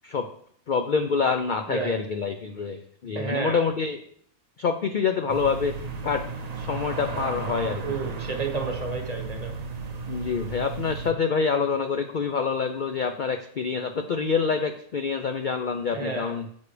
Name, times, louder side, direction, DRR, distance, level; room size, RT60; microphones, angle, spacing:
voice 1, 0.7-4.0 4.6-5.8 6.0-6.3 6.6-7.8 10.1-16.5, left 5 dB, 65° left, 6 dB, 0.5 m, -26 dB
voice 2, 1.7-2.0 3.1-3.6 7.8-9.6 15.9-16.3, right 4 dB, 30° right, 3 dB, 1.2 m, -31 dB
sound 1, 5.3-11.1, right 4 dB, 50° right, 0.5 m, -34 dB
9.5 x 7.3 x 3.3 m, 0.63 s
omnidirectional pair, 1.5 m